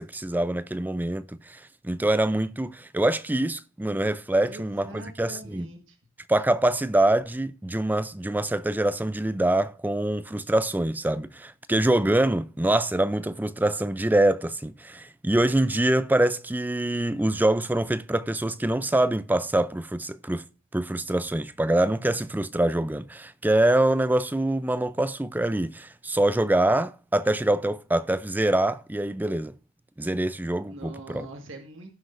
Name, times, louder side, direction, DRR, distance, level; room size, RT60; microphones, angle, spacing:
voice 1, 0.0-5.7 6.3-20.4 20.7-29.5 30.0-31.3, right 1 dB, 10° right, 0.4 m, -25 dB
voice 2, 4.4-6.0 30.6-31.9, right 1 dB, 65° right, 1.7 m, -43 dB
16.5 x 6.0 x 2.5 m
head